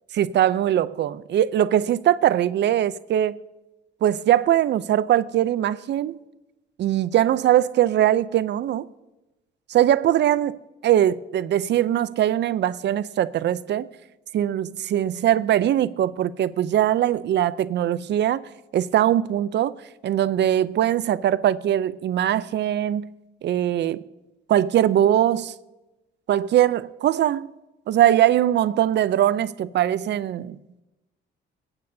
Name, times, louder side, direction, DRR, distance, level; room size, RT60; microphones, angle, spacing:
voice 1, 0.2-3.4 4.0-6.2 6.8-8.9 9.7-13.9 14.3-19.7 20.0-23.1 23.4-24.0 24.5-25.5 26.3-27.5 27.9-30.6, right 11 dB, 60° right, 0.5 m, -21 dB
23.0 x 8.8 x 2.7 m
cardioid pair, 90°, 20 cm